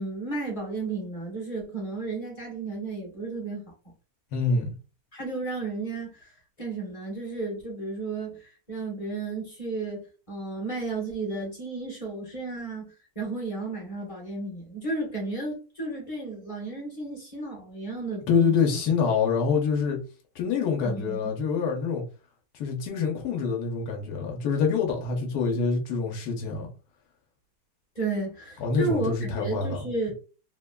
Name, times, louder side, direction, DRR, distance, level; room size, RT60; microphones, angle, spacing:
voice 1, 0.0-3.7 5.1-6.3 6.6-10.0 10.3-18.8 20.8-21.2 27.9-30.1, right 3 dB, 25° left, 1.1 m, -33 dB
voice 2, 4.3-4.7 18.3-20.0 20.3-22.0 22.5-26.7 28.6-30.1, left 5 dB, 80° left, 1.3 m, -26 dB
3.2 x 2.2 x 2.2 m
omnidirectional pair, 1.6 m